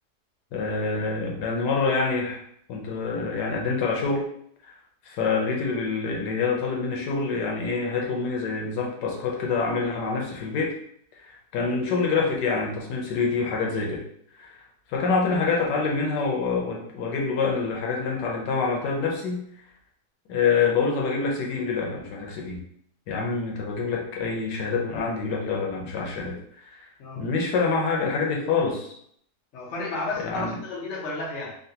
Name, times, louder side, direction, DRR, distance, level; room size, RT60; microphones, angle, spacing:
voice 1, 0.5-2.4 2.7-4.2 4.6-4.7 5.0-10.7 11.2-14.0 14.4-14.6 14.9-19.4 20.3-22.6 23.1-26.9 27.2-28.9 30.2-30.6, left 4 dB, 85° left, -1 dB, 1.3 m, -26 dB
voice 2, 29.5-31.6, left 3 dB, 50° left, -3 dB, 1.0 m, -32 dB
3.8 x 2.3 x 2.7 m, 0.67 s
omnidirectional pair, 1.8 m